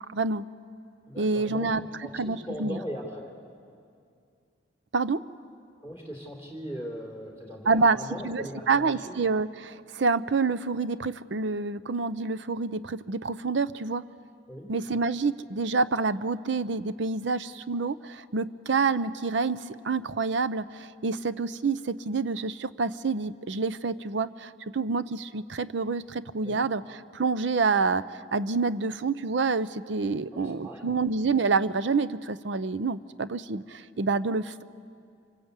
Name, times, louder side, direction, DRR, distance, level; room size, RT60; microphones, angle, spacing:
voice 1, 0.1-0.4 1.2-1.8 2.2-2.8 4.9-5.2 7.7-8.0 8.2-14.1 14.7-26.8 27.1-34.6, right 4 dB, 70° right, 14 dB, 0.6 m, -27 dB
voice 2, 1.1-3.4 5.8-9.3 14.5-14.7 26.4-26.6 30.3-31.0, equal, 15° right, -1 dB, 3.4 m, -39 dB
25.5 x 24.0 x 8.2 m, 2.3 s
head